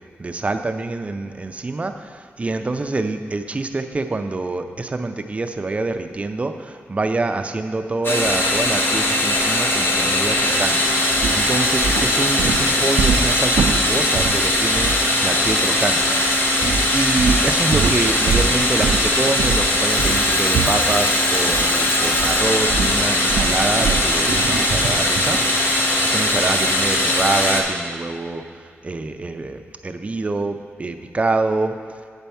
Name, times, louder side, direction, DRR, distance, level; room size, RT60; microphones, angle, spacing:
voice 1, 0.2-16.6 16.9-31.8, right 3 dB, 25° right, 7 dB, 0.4 m, -26 dB
sound 1, 8.0-27.6, left 1 dB, 50° left, 1.0 m, -20 dB
sound 2, 10.5-10.7 11.1-15.6 15.9-16.1 16.6-21.7 22.0-25.5, right 5 dB, 90° right, 0.4 m, -25 dB
Telephone, 19.8-24.0, left 2 dB, 25° left, 0.6 m, -30 dB
8.1 x 4.4 x 6.9 m, 2.2 s
wide cardioid pair, 150°, 5 cm